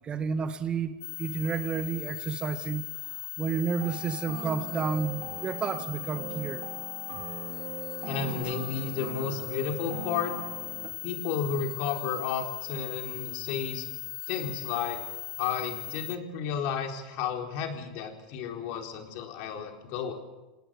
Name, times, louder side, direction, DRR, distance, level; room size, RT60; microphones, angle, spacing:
voice 1, 0.0-2.8 3.1-6.7, right 6 dB, 25° right, 1.7 m, -31 dB
sound 1, 1.0-16.2, left 17 dB, 70° left, 0.8 m, -39 dB
sound 2, 3.8-10.9, right 8 dB, 50° right, 3.0 m, -41 dB
voice 2, 8.1-10.3 11.0-13.8 14.3-15.0 15.4-20.1, left 7 dB, 55° left, 4.1 m, -32 dB
28.0 x 18.5 x 6.8 m
supercardioid pair, 125°, 4 cm